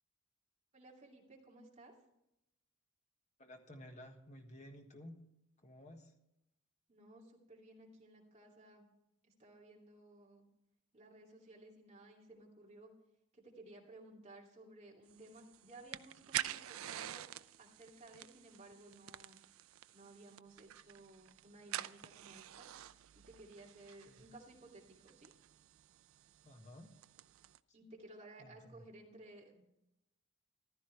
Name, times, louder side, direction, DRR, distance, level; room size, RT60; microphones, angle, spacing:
voice 1, 0.7-1.9 6.9-8.9 9.4-10.4 10.9-12.9 13.3-17.3 17.6-19.4 19.9-22.7 23.1-25.3 27.7-29.6, right 2 dB, 30° right, -2 dB, 2.6 m, -57 dB
voice 2, 3.4-5.2 5.6-6.1 24.1-24.2 26.4-26.9 28.4-28.8, left 1 dB, 35° left, 3 dB, 1.5 m, -54 dB
sound 1, 15.1-27.6, right 12 dB, 75° right, 0.4 m, -48 dB
15.0 x 12.5 x 3.3 m, 0.84 s
head